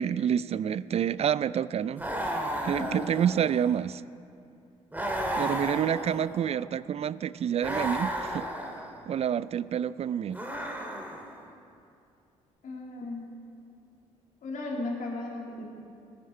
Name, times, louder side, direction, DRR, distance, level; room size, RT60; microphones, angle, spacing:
voice 1, 0.0-2.1 2.6-4.0 5.4-8.5 9.1-10.4, right 9 dB, 40° right, 18 dB, 0.4 m, -28 dB
sound 1, 2.0-3.7 4.9-6.5 7.6-8.9 10.3-11.4, right 1 dB, 10° right, 2.5 m, -33 dB
voice 2, 12.6-13.3 14.4-15.6, left 2 dB, 55° left, -2 dB, 3.0 m, -35 dB
19.5 x 9.4 x 4.4 m, 2.5 s
hypercardioid pair, 50°, 16 cm